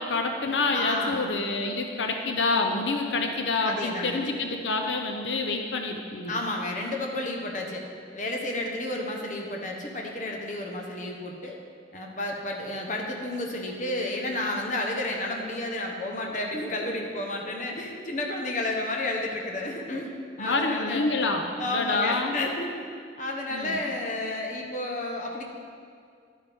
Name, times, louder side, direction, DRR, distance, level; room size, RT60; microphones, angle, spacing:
voice 1, 0.0-6.3 20.4-22.4 23.5-23.8, left 3 dB, 90° left, 4 dB, 0.7 m, -27 dB
voice 2, 0.7-1.3 3.6-4.3 6.3-7.8 8.1-11.6 11.9-20.1 20.4-21.1 21.6-22.9 23.2-25.4, left 1 dB, 45° left, 0 dB, 1.1 m, -31 dB
11.5 x 9.2 x 3.6 m, 2.2 s
head